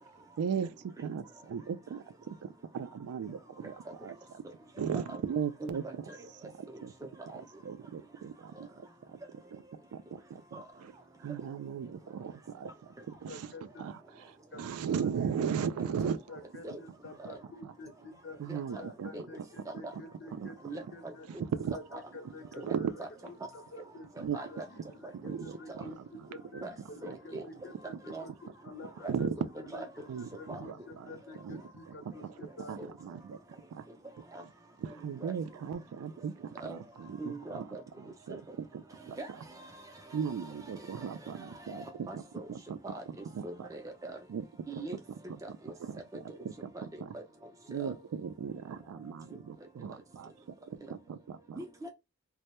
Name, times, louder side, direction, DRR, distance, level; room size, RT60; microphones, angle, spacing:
voice 1, 0.4-4.4 4.8-6.9 7.3-9.2 9.5-9.6 9.9-16.6 17.2-18.1 18.4-20.0 20.3-20.5 20.8-21.0 21.3-21.8 22.2-22.3 22.6-22.9 23.2-23.3 24.2-24.4 24.8-24.9 25.1-27.5 27.9-28.4 28.8-29.4 30.0-33.4 33.7-33.9 34.4-34.5 34.8-39.5 40.1-43.7 44.3-44.5 44.7-45.0 45.3-47.2 47.7-51.6, right 7 dB, 85° right, 0.3 m, -38 dB
voice 2, 5.6-6.2 7.3-7.4 10.5-10.6 15.4-15.5 16.6-16.8 17.3-17.4 18.5-18.6 19.1-19.2 20.6-21.4 21.9-22.0 23.0-23.1 24.3-24.7 25.7-25.8 26.6-26.7 27.0-27.4 28.1-28.3 29.0-29.5 29.7-29.9 30.5-30.6 32.8-32.9 34.3-34.4 35.2-35.3 36.6-36.8 37.2-37.8 39.2-39.3 41.7-42.5 42.8-43.0 43.4-44.2 44.7-45.0 45.4-45.7 47.1-47.2 47.8-47.9 51.6-51.9, right 2 dB, 15° right, 0.4 m, -42 dB
voice 3, 13.3-13.9 14.5-14.6 14.9-15.1 15.8-15.9 16.3-18.4 18.7-21.4 21.7-29.3 29.7-32.8, left 2 dB, 50° left, 0.5 m, -49 dB
2.1 x 2.0 x 2.8 m
head